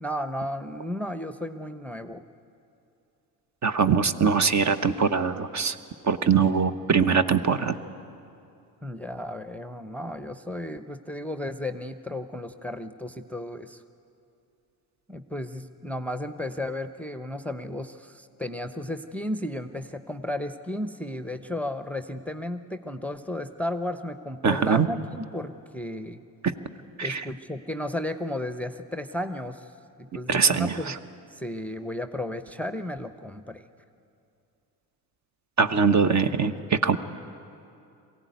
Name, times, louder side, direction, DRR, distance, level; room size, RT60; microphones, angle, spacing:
voice 1, 0.0-2.2 8.8-13.8 15.1-26.2 27.0-29.7 30.0-30.9 31.3-33.6, left 1 dB, 5° left, 9 dB, 0.9 m, -34 dB
voice 2, 3.6-5.8 6.0-7.8 24.4-24.9 26.4-26.5 27.0-27.2 30.3-31.0 35.6-37.0, right 5 dB, 35° right, 12 dB, 1.0 m, -22 dB
22.5 x 16.0 x 9.4 m, 2.6 s
hypercardioid pair, 60°, 50 cm